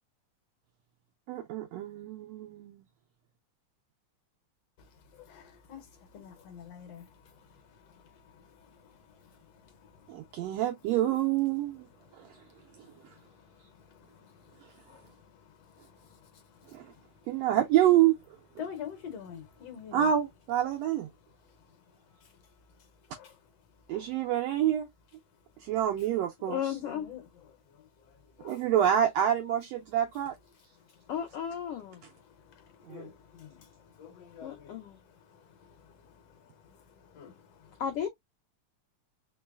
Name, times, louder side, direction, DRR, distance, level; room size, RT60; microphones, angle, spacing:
voice 1, 1.3-2.9 10.1-11.9 12.2-12.3 16.7-16.9 17.3-18.2 18.6-18.7 19.9-21.1 23.9-24.9 25.6-26.7 28.4-30.4 32.8-33.1, right 11 dB, 85° right, 1.5 m, -27 dB
voice 2, 6.1-7.0 18.6-20.0 23.2-23.3 26.5-27.2 28.4-28.5 32.9-33.1 33.4-33.5 34.0-34.7 37.1-37.3, left 8 dB, 65° left, 1.7 m, -43 dB
voice 3, 26.5-27.1 31.1-32.0 34.4-35.0 37.8-38.1, left 8 dB, 85° left, 1.3 m, -34 dB
4.5 x 3.0 x 2.3 m
omnidirectional pair, 3.5 m